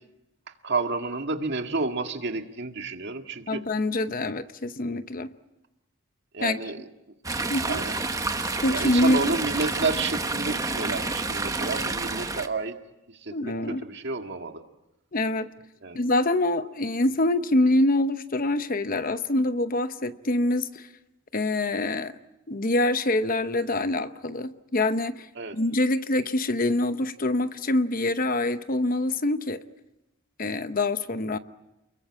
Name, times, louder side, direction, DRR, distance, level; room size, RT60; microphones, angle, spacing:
voice 1, 0.6-3.6 6.3-6.8 7.7-7.9 8.7-12.7 13.1-13.5 13.8-14.6 15.8-16.0 25.4-25.6, right 3 dB, 55° right, 1.9 m, -30 dB
voice 2, 3.5-5.3 6.4-6.6 7.5-7.8 8.4-9.3 13.3-13.8 15.1-15.5 15.9-20.9 21.3-22.2 22.5-25.3 25.5-29.6 30.4-31.4, left 2 dB, 40° left, 0.9 m, -25 dB
Chatter / Stream, 7.2-12.5, right 3 dB, 15° right, 1.1 m, -29 dB
29.5 x 22.0 x 8.7 m
head